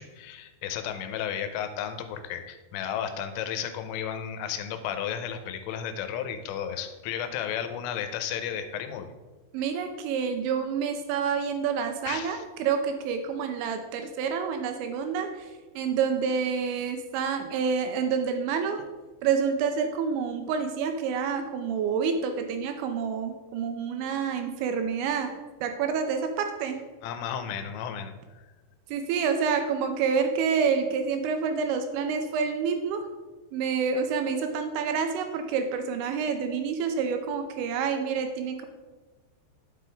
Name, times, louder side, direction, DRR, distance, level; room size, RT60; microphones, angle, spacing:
voice 1, 0.0-9.1 12.1-12.4 27.0-28.1, left 8 dB, 85° left, 8 dB, 3.2 m, -33 dB
voice 2, 9.5-15.5 15.8-18.9 19.2-26.9 28.9-33.1 33.5-38.7, right 6 dB, 80° right, 6 dB, 2.7 m, -28 dB
9.6 x 7.7 x 3.4 m, 1.3 s
omnidirectional pair, 5.8 m